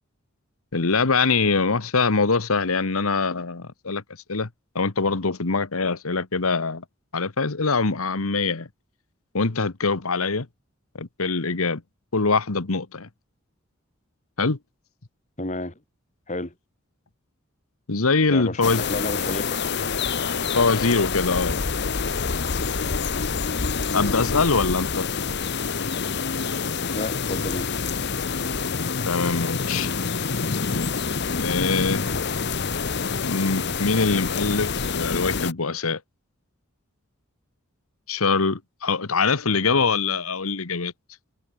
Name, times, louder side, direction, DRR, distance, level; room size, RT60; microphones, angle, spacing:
voice 1, 0.7-4.0 4.3-4.5 4.7-6.8 7.1-8.7 9.3-10.5 11.0-11.8 12.1-13.1 14.4-14.6 17.9-18.8 20.5-21.6 23.9-25.1 29.0-29.9 31.4-32.0 33.2-36.0 38.1-40.9, left 4 dB, 90° left, 1.4 m, -23 dB
voice 2, 15.4-15.7 16.3-16.5 18.3-19.6 23.9-24.2 26.9-27.7 39.7-39.8, left 1 dB, 35° left, 3.1 m, -31 dB
sound 1, 18.6-35.5, left 5 dB, 55° left, 1.0 m, -27 dB
head